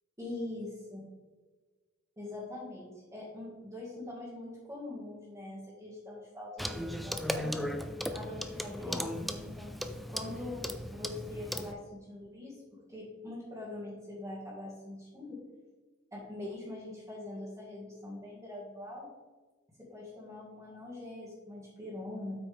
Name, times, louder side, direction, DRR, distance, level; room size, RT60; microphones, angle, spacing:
voice 1, 0.2-1.0 2.2-7.6 8.1-9.7 10.1-12.6 12.9-15.4 16.1-19.1 19.9-22.4, left 2 dB, 15° right, -9 dB, 2.0 m, -43 dB
Clock, 6.6-11.7, equal, ahead, 0.4 m, -37 dB
8.5 x 6.0 x 3.5 m, 1.3 s
head